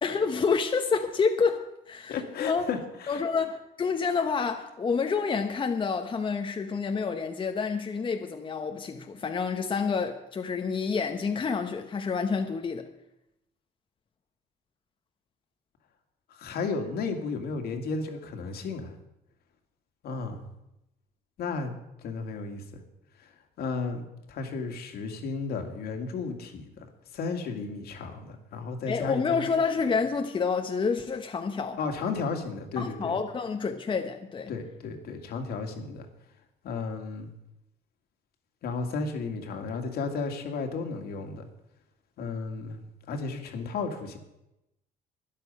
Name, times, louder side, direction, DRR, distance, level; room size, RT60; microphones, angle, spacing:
voice 1, 0.0-2.7 3.1-12.9 28.9-31.8 32.8-34.5, left 5 dB, 30° left, 1.0 m, -28 dB
voice 2, 2.1-3.2 16.4-18.9 20.0-20.4 21.4-21.7 22.0-22.6 23.6-26.7 27.1-29.6 31.8-33.2 34.5-36.1 36.6-37.3 38.6-41.5 42.2-42.8 43.1-44.2, left 4 dB, 65° left, 2.2 m, -33 dB
12.5 x 10.5 x 5.6 m
cardioid pair, 110°, 17 cm